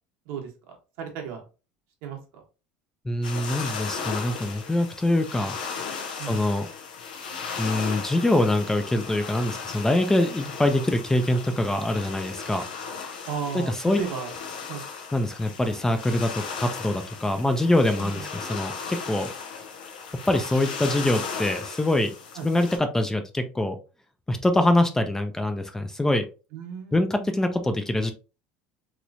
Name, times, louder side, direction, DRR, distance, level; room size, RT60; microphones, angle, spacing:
voice 1, 1.0-1.4 2.0-2.2 6.2-6.4 13.3-14.3 14.7-14.8 18.0-18.2 22.4-22.5 26.5-27.3, right 7 dB, 70° right, 1 dB, 1.1 m, -34 dB
voice 2, 3.0-5.6 6.2-6.7 7.6-12.6 13.5-14.0 15.1-19.3 20.1-22.1 22.4-23.8 24.3-26.2 26.9-28.1, left 1 dB, 10° left, 7 dB, 0.5 m, -24 dB
sound 1, 3.2-22.8, left 5 dB, 85° left, 0.6 m, -36 dB
3.0 x 3.0 x 2.5 m, 0.32 s
hypercardioid pair, 80°, 5 cm